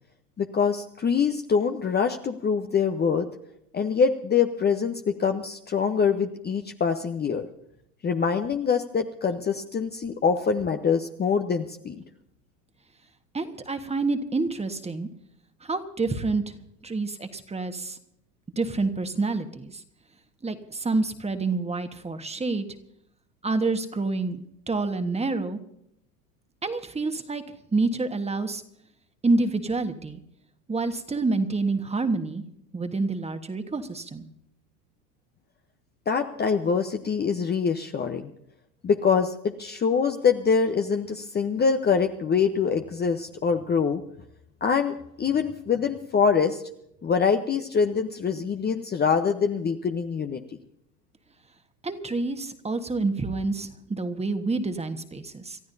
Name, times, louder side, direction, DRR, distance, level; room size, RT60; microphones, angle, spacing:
voice 1, 0.4-3.3 3.7-7.5 8.0-12.0 36.1-38.3 38.8-44.0 44.6-46.6 47.0-50.4, left 6 dB, 20° left, 6 dB, 0.9 m, -24 dB
voice 2, 13.3-15.1 15.6-16.5 16.8-18.0 18.6-19.8 20.4-22.7 23.4-25.6 26.6-27.4 27.7-28.6 29.2-30.2 30.7-32.4 32.7-34.2 51.8-55.6, right 3 dB, 15° right, 8 dB, 1.4 m, -28 dB
29.0 x 13.5 x 2.7 m, 0.76 s
hypercardioid pair, 85°, 47 cm